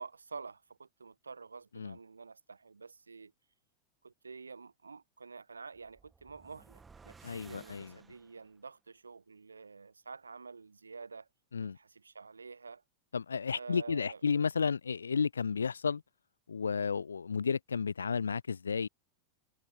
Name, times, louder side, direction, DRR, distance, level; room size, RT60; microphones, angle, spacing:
voice 1, 0.0-3.3 4.0-11.3 11.6-12.8 13.5-14.2, right 4 dB, 75° right, 0.6 m, -48 dB
sound 1, 5.7-8.6, right 4 dB, 15° right, 0.9 m, -57 dB
voice 2, 7.2-8.0 11.5-11.8 13.1-16.0 16.5-18.9, left 5 dB, 75° left, 0.3 m, -32 dB
figure-of-eight pair, 90°, 0 cm